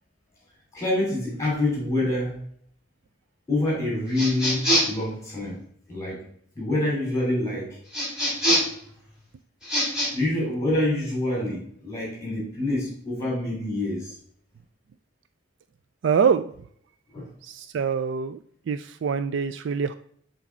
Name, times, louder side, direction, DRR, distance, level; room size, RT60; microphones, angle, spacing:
voice 1, 0.7-2.4 3.5-5.6 5.9-6.2 6.6-7.8 10.1-14.1 17.1-17.3, left 1 dB, 15° left, -3 dB, 2.9 m, -26 dB
sound 1, 4.1-5.0 7.9-8.8 9.6-10.1, equal, 5° right, 2.9 m, -24 dB
voice 2, 16.0-16.4 17.4-18.4 18.7-20.0, right 6 dB, 65° right, 11 dB, 0.3 m, -24 dB
6.1 x 4.0 x 5.9 m, 0.62 s
head